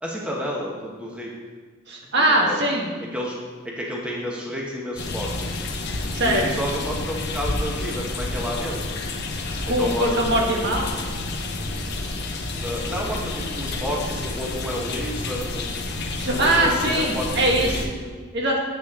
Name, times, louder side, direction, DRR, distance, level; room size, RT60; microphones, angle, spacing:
voice 1, 0.0-1.3 2.2-2.6 3.1-3.4 3.6-5.6 6.2-9.0 9.8-10.3 10.5-10.7 12.6-15.7 16.3-18.2, equal, 5° right, -3 dB, 1.3 m, -30 dB
voice 2, 1.9-2.9 6.1-6.5 9.7-10.9 16.2-17.8 18.3-18.6, right 1 dB, 60° right, -1 dB, 1.6 m, -21 dB
sound 1, 5.0-17.9, left 2 dB, 55° left, 0.9 m, -29 dB
9.5 x 8.1 x 3.7 m, 1.5 s
head